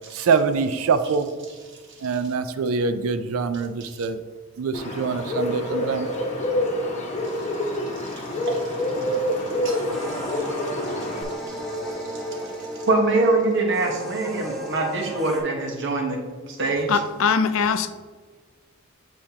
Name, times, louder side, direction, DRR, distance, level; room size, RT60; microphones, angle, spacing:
voice 1, 0.1-1.3 2.0-4.2 4.6-6.1, right 5 dB, 85° right, 10 dB, 0.4 m, -24 dB
Bird, 4.7-11.2, left 1 dB, 35° left, 1.1 m, -27 dB
sound 1, 9.6-15.4, right 1 dB, ahead, 1.7 m, -34 dB
voice 2, 12.9-16.2 16.6-16.9, right 2 dB, 60° right, 2 dB, 1.1 m, -23 dB
voice 3, 16.9-17.9, left 5 dB, 70° left, 10 dB, 0.4 m, -21 dB
8.6 x 4.3 x 2.8 m, 1.5 s
head